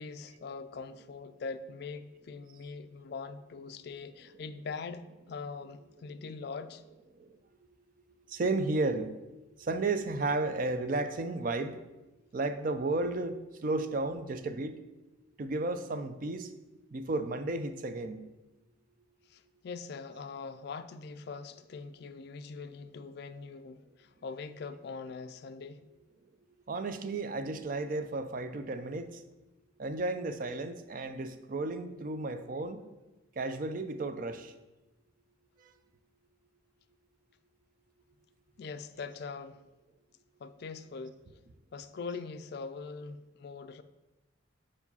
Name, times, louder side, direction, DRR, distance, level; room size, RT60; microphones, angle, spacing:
voice 1, 0.0-6.8 19.3-25.8 38.6-39.6 40.4-41.2 41.7-43.8, left 4 dB, 55° left, 0.3 m, -42 dB
voice 2, 8.3-9.1 9.6-11.8 12.3-14.8 15.4-16.5 16.9-18.2 26.7-29.2 29.8-32.8 33.4-34.5, right 2 dB, 45° right, 0.4 m, -33 dB
4.9 x 4.8 x 5.4 m
head